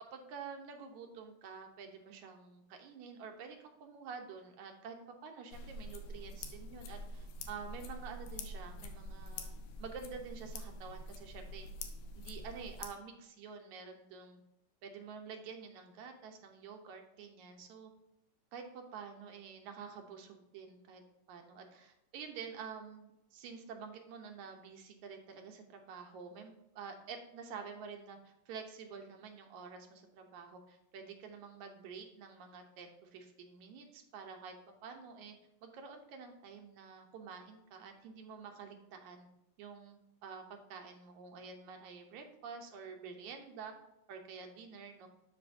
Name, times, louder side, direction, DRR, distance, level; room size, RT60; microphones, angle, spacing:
voice 1, 0.1-11.7 12.2-14.4 14.8-17.9 18.5-21.0 21.3-34.5 34.8-35.4 35.6-39.3 39.6-43.7 44.1-45.1, right 6 dB, 80° right, 4 dB, 2.2 m, -49 dB
sound 1, 5.5-12.9, left 1 dB, 85° left, 2.3 m, -46 dB
12.0 x 4.8 x 2.7 m, 0.86 s
omnidirectional pair, 3.4 m